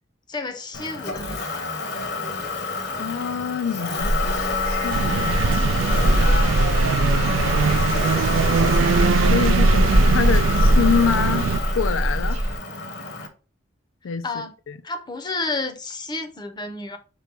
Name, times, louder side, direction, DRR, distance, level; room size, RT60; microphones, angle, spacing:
voice 1, 0.3-1.7 7.1-7.5 14.2-14.5 14.8-17.0, left 3 dB, 20° left, 0.6 m, -31 dB
Motor vehicle (road), 0.7-13.3, left 4 dB, 55° left, 0.9 m, -28 dB
voice 2, 3.0-5.8 9.2-12.4 14.0-14.3 14.7-14.8, left 6 dB, 75° left, 0.4 m, -26 dB
sound 1, 4.0-12.6, right 1 dB, 35° right, 0.8 m, -21 dB
sound 2, 4.9-11.6, right 6 dB, 75° right, 0.3 m, -23 dB
5.3 x 2.2 x 4.5 m
head